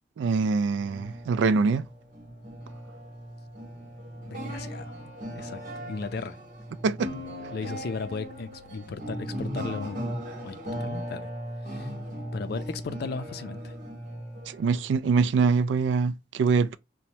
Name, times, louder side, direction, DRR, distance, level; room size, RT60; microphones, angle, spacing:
voice 1, 0.2-1.9 6.8-7.1 14.5-16.8, right 4 dB, 80° right, 0.3 m, -24 dB
sound 1, 0.7-15.4, equal, 45° right, 1.1 m, -38 dB
voice 2, 4.1-4.9 5.3-6.4 7.5-10.0 10.4-11.3 11.6-11.9 12.3-13.7, left 4 dB, 60° left, 0.4 m, -36 dB
2.9 x 2.1 x 2.6 m
head